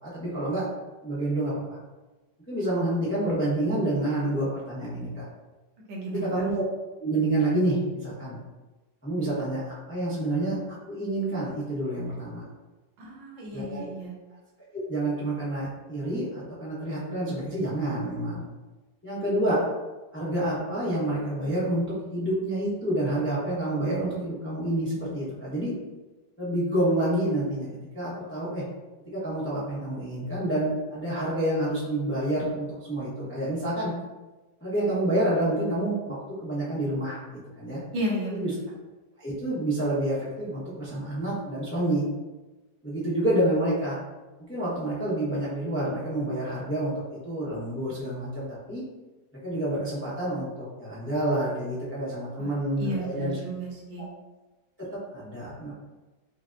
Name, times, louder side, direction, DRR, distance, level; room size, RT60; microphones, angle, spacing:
voice 1, 0.0-0.6 1.0-1.8 2.5-5.2 6.1-6.6 7.0-8.4 9.0-10.6 10.9-12.4 13.5-13.9 14.7-18.4 19.0-19.6 20.1-25.7 26.4-27.7 27.9-28.6 29.1-33.9 34.6-36.2 36.4-37.8 38.3-38.5 39.2-42.0 42.8-44.0 44.5-46.9 47.2-48.8 49.4-53.4 54.8-54.9 55.1-55.7, right 1 dB, 10° left, -9 dB, 0.6 m, -28 dB
voice 2, 5.9-6.3 13.0-14.2 37.9-38.5 52.4-52.5 52.8-54.1, equal, 90° right, -3 dB, 1.6 m, -33 dB
5.8 x 2.1 x 2.5 m, 1.2 s
omnidirectional pair, 1.9 m